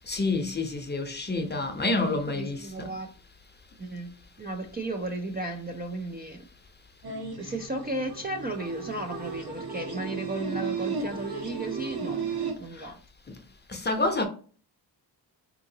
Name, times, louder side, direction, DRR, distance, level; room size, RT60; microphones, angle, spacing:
voice 1, 0.1-2.9 12.8-12.9 13.7-14.2, left 2 dB, 25° left, 0.6 m, -28 dB
voice 2, 2.3-3.1 3.8-6.5 7.3-12.2 12.6-13.0, right 2 dB, 25° right, 0.3 m, -34 dB
sound 1, 7.0-12.5, right 5 dB, 60° right, 1.1 m, -34 dB
3.6 x 2.8 x 2.7 m
wide cardioid pair, 100°, 43 cm